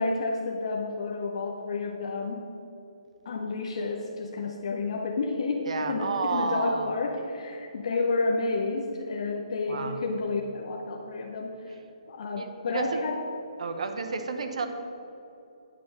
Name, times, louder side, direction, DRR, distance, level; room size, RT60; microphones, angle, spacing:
voice 1, 0.0-2.5 3.2-11.7 12.1-13.2, left 3 dB, 55° left, 1 dB, 0.8 m, -30 dB
voice 2, 5.6-6.9 9.7-10.0 12.3-13.0 13.6-14.7, right 4 dB, 65° right, 7 dB, 0.9 m, -31 dB
8.9 x 5.2 x 5.8 m, 2.9 s
hypercardioid pair, 145°, 4 cm